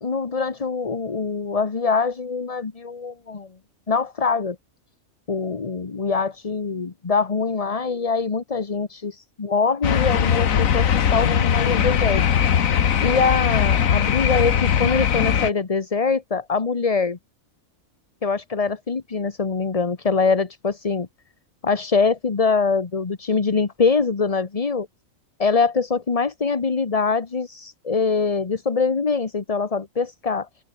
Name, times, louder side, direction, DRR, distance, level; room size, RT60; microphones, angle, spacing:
voice 1, 0.0-3.5 3.9-4.6 5.3-12.2 13.0-17.2 18.2-21.1 21.6-24.9 25.4-30.5, left 4 dB, 30° left, 1.0 m, -23 dB
sound 1, 9.8-15.5, left 8 dB, 80° left, 1.6 m, -20 dB
open air
omnidirectional pair, 1.4 m